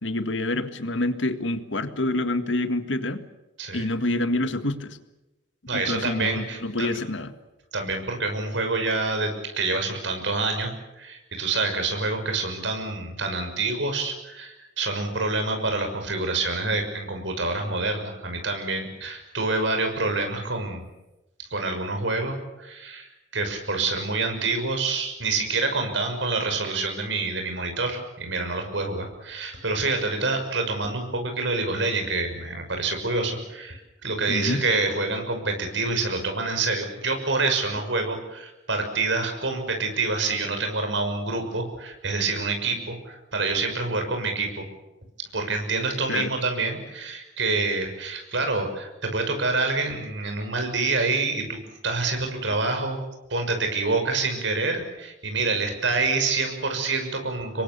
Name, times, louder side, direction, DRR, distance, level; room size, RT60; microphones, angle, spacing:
voice 1, 0.0-3.2 3.7-5.0 5.7-7.3 34.3-34.6 46.1-46.3, left 2 dB, 80° left, 10 dB, 1.8 m, -27 dB
voice 2, 5.7-6.9 7.7-10.7 11.0-20.8 21.4-44.6 45.3-51.6 51.8-53.0 53.3-57.6, right 3 dB, 75° right, 5 dB, 6.1 m, -27 dB
27.5 x 23.0 x 7.0 m, 0.98 s
head